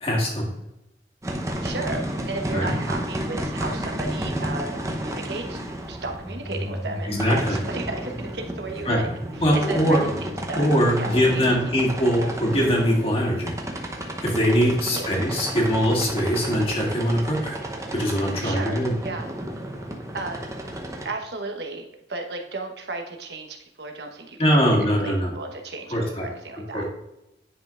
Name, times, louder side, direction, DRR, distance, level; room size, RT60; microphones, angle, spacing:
voice 1, 0.0-0.5 2.5-2.7 7.0-7.6 8.9-9.0 9.4-10.0 10.6-13.5 14.0-19.0 24.4-25.3 25.9-26.3 26.7-26.8, equal, 35° left, -1 dB, 1.7 m, -22 dB
sound 1, 1.2-21.1, right 1 dB, 15° right, 0.8 m, -32 dB
voice 2, 1.6-5.6 5.9-10.7 11.0-11.6 14.9-15.0 18.4-19.4 20.1-20.5 21.0-26.8, right 3 dB, 75° right, 3 dB, 1.1 m, -34 dB
9.9 x 5.5 x 2.5 m, 0.90 s
head